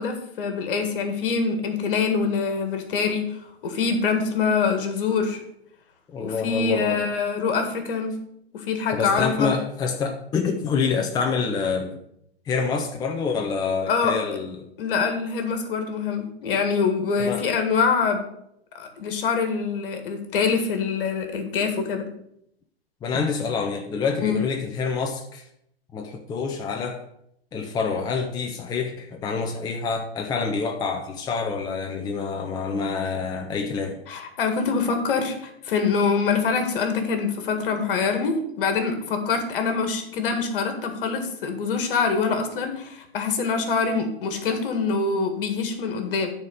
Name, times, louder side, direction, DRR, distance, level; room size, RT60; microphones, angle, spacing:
voice 1, 0.0-5.4 6.2-8.2 8.5-9.5 13.9-14.2 14.8-18.2 18.7-22.1 24.2-24.4 34.1-46.3, left 5 dB, 60° left, 6 dB, 1.9 m, -25 dB
voice 2, 6.1-7.0 8.9-12.0 12.5-14.6 17.2-17.5 23.0-25.5 25.9-27.0 27.5-34.0, left 5 dB, 15° left, 3 dB, 0.6 m, -27 dB
9.3 x 4.4 x 6.5 m, 0.75 s
hypercardioid pair, 120°, 32 cm